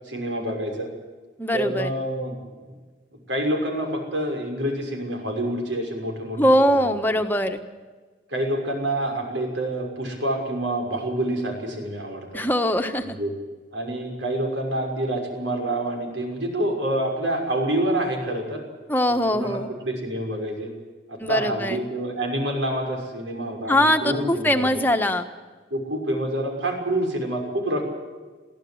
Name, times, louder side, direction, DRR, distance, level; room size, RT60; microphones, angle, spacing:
voice 1, 0.0-0.9 1.5-2.4 3.3-6.4 6.7-7.0 8.3-12.4 13.0-13.4 13.7-18.6 19.1-20.7 21.1-24.7 25.7-27.8, right 1 dB, 85° right, 2 dB, 6.3 m, -27 dB
voice 2, 1.4-1.9 6.4-7.6 12.3-13.2 18.9-19.7 21.2-21.9 23.7-25.2, left 1 dB, 10° left, 6 dB, 1.4 m, -22 dB
23.0 x 16.0 x 8.0 m, 1.4 s
head